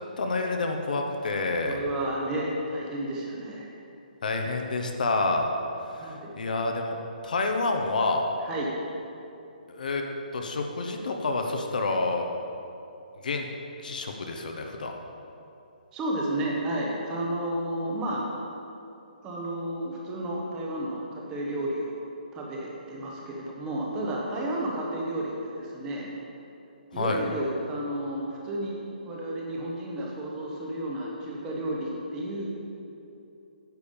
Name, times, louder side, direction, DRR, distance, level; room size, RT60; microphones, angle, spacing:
voice 1, 0.2-1.8 4.2-5.5 5.9-7.0 7.2-8.2 9.7-10.0 10.3-12.3 13.2-13.5 13.8-14.9 26.9-27.2, left 3 dB, 60° left, 3 dB, 0.9 m, -28 dB
voice 2, 1.6-3.7 6.0-6.3 8.4-8.7 15.9-18.3 19.2-21.9 22.3-26.1 26.9-28.8 29.0-32.5, right 1 dB, 10° right, -3 dB, 1.0 m, -32 dB
9.2 x 7.0 x 5.2 m, 2.8 s
hypercardioid pair, 170°, 5 cm